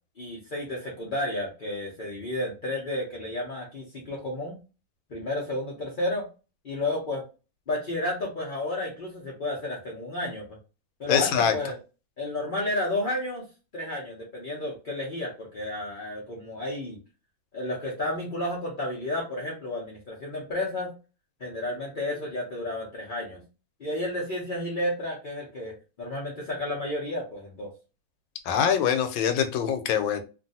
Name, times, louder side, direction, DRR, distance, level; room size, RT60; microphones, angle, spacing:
voice 1, 0.2-4.6 5.1-6.2 6.6-7.2 7.7-10.5 11.0-11.8 12.2-13.4 13.7-17.0 17.5-20.9 21.4-23.4 23.8-27.7, left 1 dB, 70° left, -4 dB, 0.4 m, -32 dB
voice 2, 11.1-11.6 28.5-30.2, left 8 dB, 85° left, 8 dB, 1.4 m, -24 dB
2.9 x 2.6 x 2.6 m, 0.32 s
omnidirectional pair, 2.1 m